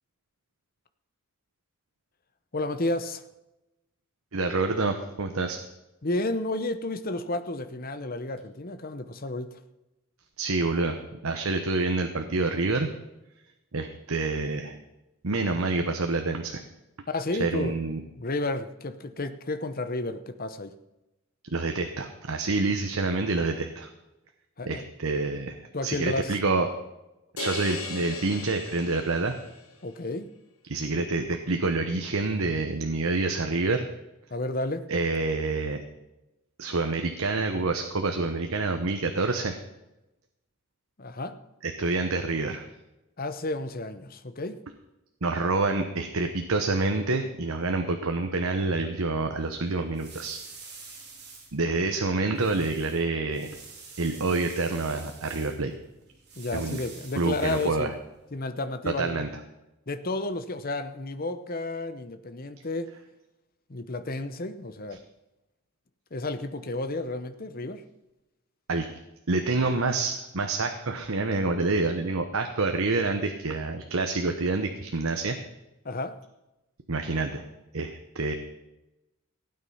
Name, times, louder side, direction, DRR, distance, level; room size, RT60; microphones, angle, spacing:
voice 1, 2.5-3.2 6.0-9.6 17.1-17.8 18.2-20.7 24.6-24.9 25.7-26.4 29.8-30.3 34.3-34.8 41.0-41.4 43.2-44.6 56.4-57.9 58.3-59.3 59.9-62.9 63.7-65.0 66.1-67.8 75.8-76.2, left 2 dB, 40° left, 10 dB, 0.9 m, -32 dB
voice 2, 4.3-5.6 10.4-12.9 13.7-14.8 15.2-16.6 17.4-18.0 21.5-23.9 24.7-26.7 27.4-29.4 30.7-33.9 34.9-35.8 36.6-39.6 41.6-42.6 45.2-50.4 51.5-53.6 54.0-55.7 56.5-56.8 57.1-57.9 58.9-59.3 68.7-68.9 69.3-75.4 76.9-77.5 77.7-78.3, right 3 dB, 70° right, 5 dB, 1.0 m, -27 dB
sound 1, 27.4-29.7, left 4 dB, 75° left, 1.7 m, -37 dB
sound 2, 49.2-58.4, right 4 dB, 50° right, 3.2 m, -49 dB
16.0 x 9.0 x 5.6 m, 0.96 s
head